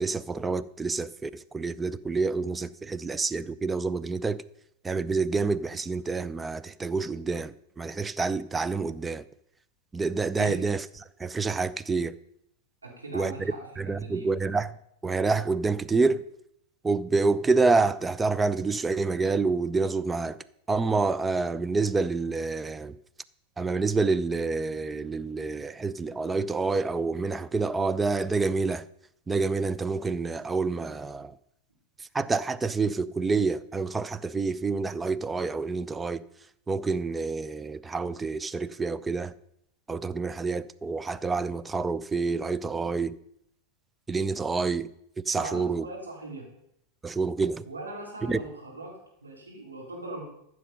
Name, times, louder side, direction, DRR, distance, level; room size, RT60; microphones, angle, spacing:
voice 1, 0.0-4.4 4.8-9.2 9.9-10.8 11.2-12.2 13.1-13.5 13.8-14.7 15.0-16.2 16.8-20.4 20.7-22.9 23.6-28.9 29.3-31.3 32.1-36.2 36.7-39.3 39.9-43.1 44.1-44.9 45.3-45.8 47.0-47.7 48.3-48.4, right 4 dB, 10° right, 0.4 m, -27 dB
voice 2, 12.8-14.3 45.3-46.4 47.7-50.2, right 2 dB, 80° right, 3.8 m, -40 dB
14.0 x 6.3 x 5.4 m
figure-of-eight pair, 90°, 0 cm